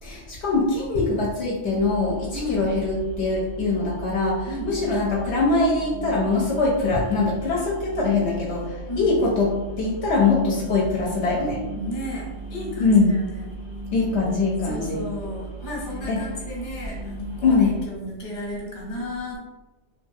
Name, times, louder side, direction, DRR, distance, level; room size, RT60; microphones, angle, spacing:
voice 1, 0.0-9.5 9.8-11.6 12.8-13.1 13.9-15.0 16.1-16.2 17.4-17.7, left 3 dB, 70° left, -4 dB, 0.8 m, -22 dB
sound 1, 1.6-17.8, right 1 dB, 35° right, 0.5 m, -36 dB
voice 2, 2.3-2.6 4.5-4.7 8.9-9.1 11.8-13.5 14.6-19.4, left 1 dB, 45° left, -4 dB, 0.9 m, -33 dB
2.8 x 2.3 x 2.6 m, 1.2 s
omnidirectional pair, 1.2 m